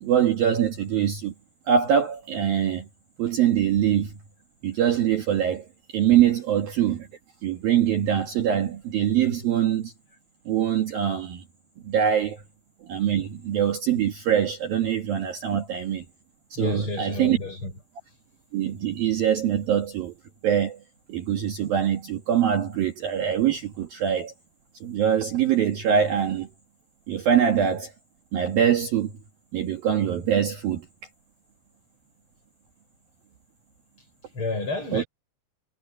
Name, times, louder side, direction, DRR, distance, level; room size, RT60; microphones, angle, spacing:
voice 1, 0.0-1.3 1.7-2.9 3.2-4.1 4.6-7.1 7.4-9.9 10.5-11.4 11.8-12.4 12.9-16.0 16.5-17.4 18.5-20.1 20.4-20.8 21.1-24.3 24.8-26.5 27.1-27.9 28.3-29.1 29.5-30.9 34.9-35.0, right 9 dB, 60° right, 3.1 m, -23 dB
voice 2, 16.6-17.7 34.3-35.1, left 3 dB, 25° left, 7.2 m, -30 dB
omnidirectional pair, 5.5 m